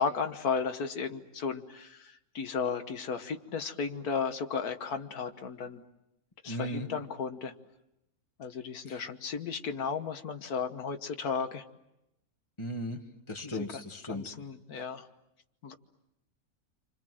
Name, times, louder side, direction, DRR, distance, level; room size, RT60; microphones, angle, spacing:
voice 1, 0.0-5.8 6.4-7.5 8.4-11.6 13.4-13.7 14.1-15.1 15.6-15.7, left 5 dB, 85° left, 7 dB, 1.8 m, -34 dB
voice 2, 6.5-6.9 8.9-9.0 12.6-13.0 13.3-14.3 14.7-14.8, left 1 dB, 20° left, 4 dB, 1.8 m, -37 dB
30.0 x 25.5 x 7.7 m, 0.87 s
omnidirectional pair, 1.6 m